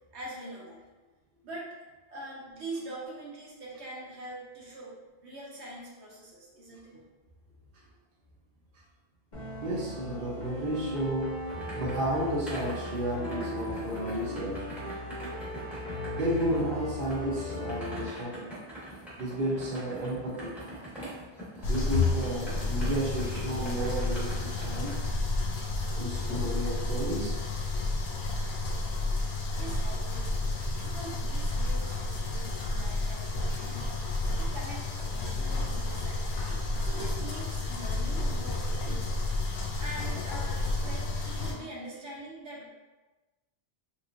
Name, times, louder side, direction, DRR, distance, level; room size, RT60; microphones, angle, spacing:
voice 1, 0.1-0.8 1.4-1.8 2.1-5.0 5.2-7.0 29.5-30.5 30.8-36.4 36.8-39.2 39.8-42.7, right 1 dB, 80° right, -5 dB, 1.1 m, -43 dB
sound 1, 9.3-18.1, left 1 dB, 45° left, 0.9 m, -38 dB
voice 2, 9.6-11.4 11.7-14.7 16.1-18.5 19.2-20.5 21.7-25.0 26.0-27.4 33.5-33.7 36.4-36.9 38.9-39.0, right 1 dB, 55° right, -5 dB, 0.9 m, -32 dB
sound 2, 11.1-25.1, right 1 dB, ahead, 1.0 m, -44 dB
sound 3, 21.6-41.5, left 2 dB, 75° left, 0.9 m, -31 dB
3.2 x 3.1 x 2.5 m, 1.2 s
omnidirectional pair, 1.1 m